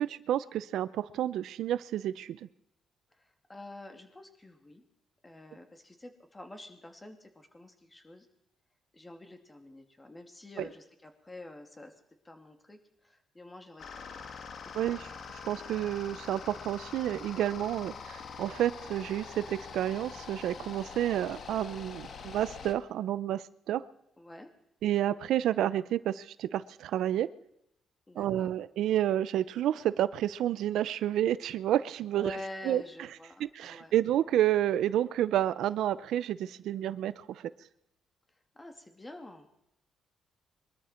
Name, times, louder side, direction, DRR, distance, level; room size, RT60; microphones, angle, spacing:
voice 1, 0.0-2.4 10.6-10.7 14.7-15.1 15.4-23.8 24.8-27.3 28.2-32.4 32.6-32.8 33.4-37.5, right 12 dB, 80° right, 16 dB, 0.7 m, -30 dB
voice 2, 3.2-4.8 5.2-8.3 8.9-11.9 12.2-14.3 14.8-15.0 17.8-18.0 24.2-24.5 28.1-28.5 32.1-33.9 38.5-39.5, left 1 dB, 20° left, 5 dB, 2.8 m, -47 dB
sound 1, 13.8-22.7, left 6 dB, 55° left, 1.7 m, -44 dB
23.0 x 13.0 x 4.5 m, 0.79 s
cardioid pair, 90°, 0 cm